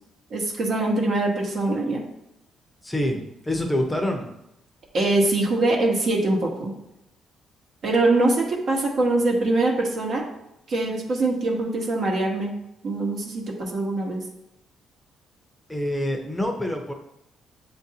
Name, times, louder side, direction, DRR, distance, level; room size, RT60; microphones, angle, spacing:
voice 1, 0.3-2.0 4.9-6.7 7.8-10.2 10.7-12.5 12.8-14.2, right 2 dB, 60° right, 0 dB, 1.0 m, -23 dB
voice 2, 2.8-4.3 15.7-16.9, left 1 dB, 10° left, 3 dB, 0.7 m, -26 dB
7.4 x 2.6 x 2.8 m, 0.84 s
cardioid pair, 90°, 0 cm